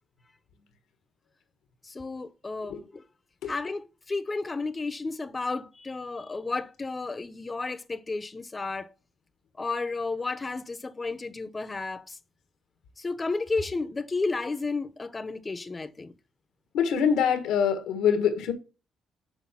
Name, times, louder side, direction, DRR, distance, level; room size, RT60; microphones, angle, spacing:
voice 1, 1.8-3.0 3.5-8.9 9.6-12.2 13.0-16.1, left 3 dB, 25° left, 0.7 m, -32 dB
voice 2, 16.7-18.5, left 7 dB, 90° left, 1.3 m, -24 dB
6.2 x 4.8 x 5.8 m
cardioid pair, 90°, 0 cm